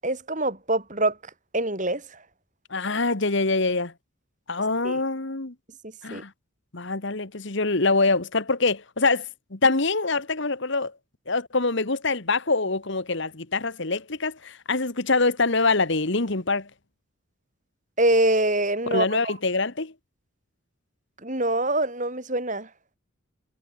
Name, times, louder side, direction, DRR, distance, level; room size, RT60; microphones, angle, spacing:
voice 1, 0.0-1.2 1.5-2.2 4.8-5.0 6.1-6.2 18.0-19.3 21.2-22.7, right 2 dB, 35° right, 6.7 m, -24 dB
voice 2, 2.7-3.9 4.5-5.5 6.0-6.3 6.7-10.9 11.3-16.7 18.9-19.9, left 3 dB, 55° left, 1.5 m, -24 dB
head